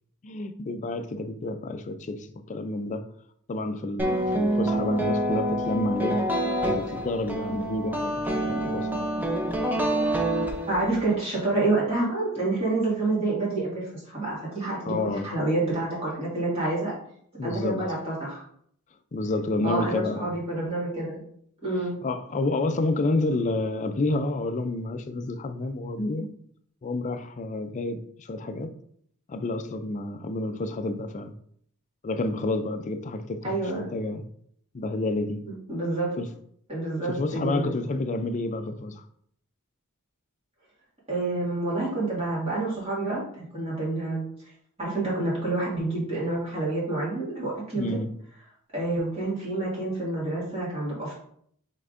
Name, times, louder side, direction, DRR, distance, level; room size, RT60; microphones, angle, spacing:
voice 1, 0.2-3.0 3.5-6.2 6.6-9.1 14.9-15.3 17.4-17.8 19.1-20.3 22.0-26.3 26.8-28.7 29.3-31.3 32.0-34.2 34.7-35.4 36.2-36.3 37.0-39.0 47.7-48.1, left 2 dB, 35° left, 8 dB, 0.4 m, -29 dB
sound 1, 4.0-11.1, right 1 dB, 10° right, 0.6 m, -27 dB
voice 2, 10.7-16.9 17.4-18.4 19.6-21.2 21.6-21.9 33.4-33.9 35.7-36.1 36.7-37.7 41.1-44.3 44.8-47.8 48.7-51.1, right 2 dB, 30° right, -7 dB, 1.9 m, -28 dB
5.4 x 3.5 x 2.5 m, 0.65 s
head